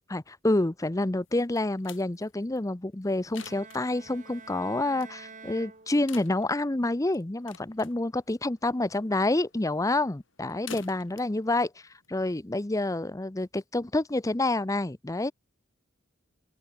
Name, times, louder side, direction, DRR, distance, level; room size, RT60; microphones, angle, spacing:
voice 1, 0.1-11.7 12.1-15.3, left 2 dB, 15° left, 0.7 m, -28 dB
sound 1, 1.2-12.7, left 7 dB, 70° left, 5.8 m, -51 dB
Bowed string instrument, 3.4-6.5, right 5 dB, 40° right, 5.2 m, -48 dB
open air
head